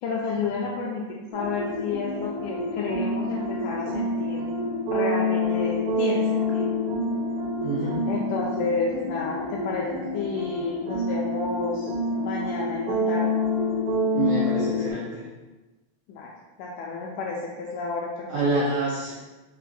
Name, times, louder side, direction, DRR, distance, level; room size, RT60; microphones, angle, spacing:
voice 1, 0.0-4.4 4.9-6.7 8.1-13.4 16.1-16.3 16.6-18.3, left 4 dB, 80° left, -2 dB, 1.8 m, -31 dB
sound 1, 1.3-14.9, left 2 dB, 65° right, 1.3 m, -27 dB
voice 2, 7.6-8.0 14.1-15.2 18.3-19.1, right 3 dB, 80° right, -8 dB, 1.4 m, -26 dB
5.4 x 2.5 x 3.9 m, 1.1 s
omnidirectional pair, 4.0 m